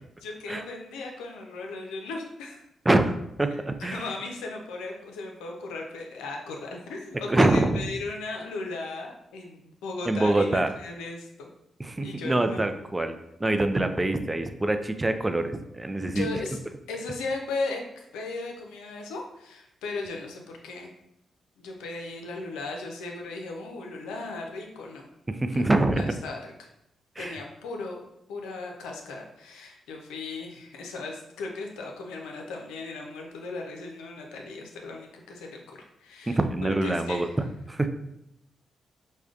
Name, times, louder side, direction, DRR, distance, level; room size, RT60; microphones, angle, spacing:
voice 1, 0.2-2.6 3.8-11.5 12.0-12.6 16.1-16.6 16.9-20.9 21.6-25.0 25.5-25.6 25.9-26.7 27.2-28.0 28.3-37.4, left 3 dB, 90° left, 1 dB, 0.5 m, -36 dB
voice 2, 2.9-4.1 7.3-7.8 10.1-10.7 11.8-16.3 25.3-26.1 27.2-27.4 36.3-37.3 37.7-37.9, right 2 dB, 20° right, 8 dB, 0.4 m, -25 dB
4.9 x 2.2 x 2.4 m, 0.82 s
supercardioid pair, 50°, 0 cm